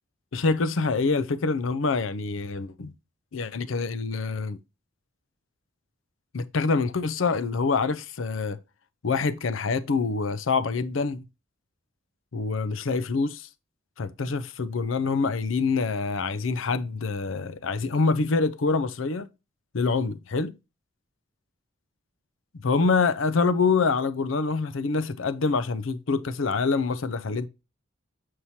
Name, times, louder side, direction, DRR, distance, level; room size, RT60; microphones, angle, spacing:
voice 1, 0.3-2.9 3.3-4.6 6.3-8.6 9.0-11.2 12.3-13.5 14.0-19.3 19.7-20.5 22.6-27.5, left 4 dB, 80° left, 0.6 m, -26 dB
7.2 x 4.7 x 2.7 m
head